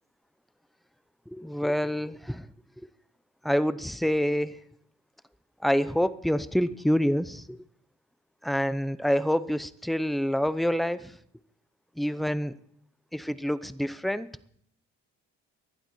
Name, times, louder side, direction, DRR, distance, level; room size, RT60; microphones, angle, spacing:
voice 1, 1.3-2.5 2.8-2.9 3.4-4.6 5.6-7.6 8.4-11.2 12.0-12.5 13.1-14.3, equal, ahead, 15 dB, 0.7 m, -27 dB
18.5 x 11.5 x 4.5 m, 0.68 s
cardioid pair, 90°, 30 cm